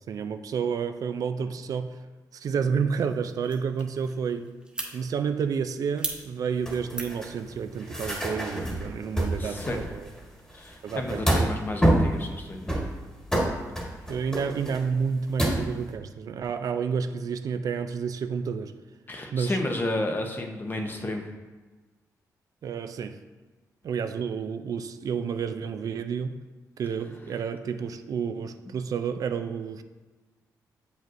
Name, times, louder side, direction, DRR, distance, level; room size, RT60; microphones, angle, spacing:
voice 1, 0.1-2.0 2.3-4.5 4.9-10.1 10.8-11.5 14.1-18.8 19.3-19.6 22.6-23.2 23.8-26.4 26.8-29.8, right 6 dB, 60° right, 9 dB, 0.3 m, -30 dB
sound 1, 3.0-8.9, right 2 dB, 15° right, 1.0 m, -41 dB
sound 2, 6.6-10.2 10.5-11.6 11.8-12.2 12.7-15.7, right 1 dB, 10° left, 1.4 m, -27 dB
voice 2, 9.4-9.8 10.5-12.8 19.1-21.2, left 1 dB, 30° left, 4 dB, 0.8 m, -32 dB
7.5 x 5.1 x 2.6 m, 1.3 s
cardioid pair, 100°, 7 cm